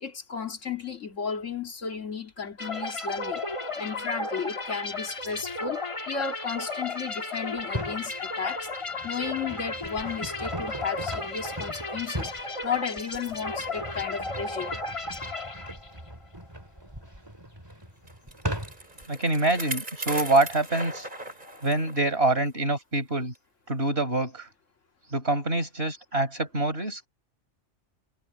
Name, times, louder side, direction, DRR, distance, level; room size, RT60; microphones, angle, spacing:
voice 1, 0.0-3.4 3.8-8.7 9.0-12.3 12.6-14.7, left 6 dB, 90° left, 2.4 m, -33 dB
sound 1, 2.6-16.1, left 2 dB, 25° left, 1.5 m, -34 dB
sound 2, 7.6-8.1 8.7-19.0, right 1 dB, 20° right, 4.3 m, -39 dB
Bicycle, 18.1-22.0 22.4-22.5 23.3-23.4, right 2 dB, 40° right, 3.7 m, -38 dB
voice 2, 19.1-21.1 21.6-23.3 23.7-24.5 25.1-27.0, right 2 dB, 55° right, 5.5 m, -25 dB
omnidirectional pair, 1.2 m